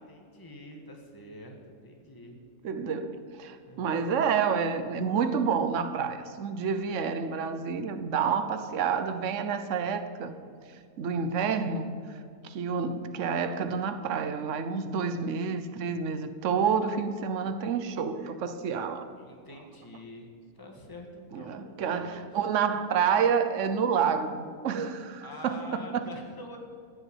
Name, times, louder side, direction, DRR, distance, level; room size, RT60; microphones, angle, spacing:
voice 1, 0.0-2.4 3.6-4.0 19.2-20.3 20.6-22.4 25.2-26.6, left 1 dB, 15° left, 1.7 m, -46 dB
voice 2, 2.6-10.3 11.0-12.0 12.4-19.1 21.3-26.1, right 6 dB, 65° right, 1.2 m, -29 dB
16.0 x 7.1 x 9.2 m
omnidirectional pair, 1.4 m